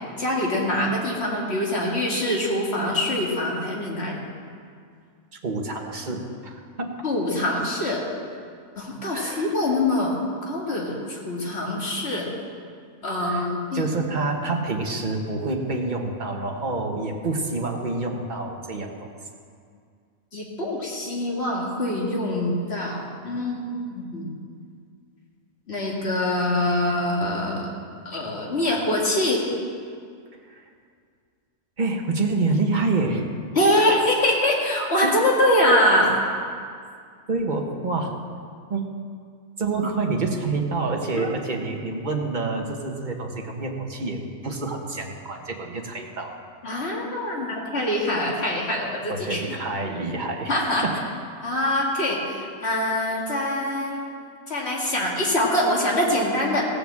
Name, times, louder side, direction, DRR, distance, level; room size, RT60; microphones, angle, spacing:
voice 1, 0.2-4.2 7.0-8.0 8.8-12.3 13.0-13.9 20.3-24.4 25.7-27.7 28.1-29.5 33.5-36.2 41.1-41.3 41.6-41.7 46.6-49.4 50.5-50.8 51.4-54.1 54.5-56.7, left 1 dB, 45° left, -3 dB, 2.3 m, -24 dB
voice 2, 5.4-7.0 9.1-9.5 13.1-13.5 13.7-19.1 30.4-30.6 31.8-33.3 33.7-34.0 35.0-35.2 37.3-38.2 38.7-38.9 39.6-44.2 44.4-46.4 49.1-51.0, right 3 dB, 35° right, 1 dB, 1.4 m, -27 dB
16.5 x 6.9 x 7.5 m, 2.2 s
omnidirectional pair, 1.5 m